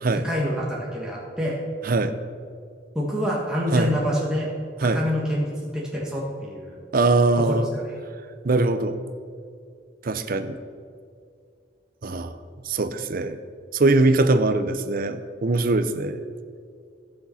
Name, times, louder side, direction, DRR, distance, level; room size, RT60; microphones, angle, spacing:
voice 1, 0.1-1.6 2.9-4.5 4.8-6.8 7.4-7.6 7.9-8.0, equal, 5° right, -5 dB, 1.4 m, -27 dB
voice 2, 1.8-2.2 3.7-3.9 4.8-5.0 6.9-7.7 8.4-9.0 10.0-10.6 12.0-12.4 12.6-13.4 13.7-16.2, right 2 dB, 50° right, 11 dB, 0.6 m, -22 dB
15.0 x 6.5 x 5.7 m, 2.3 s
head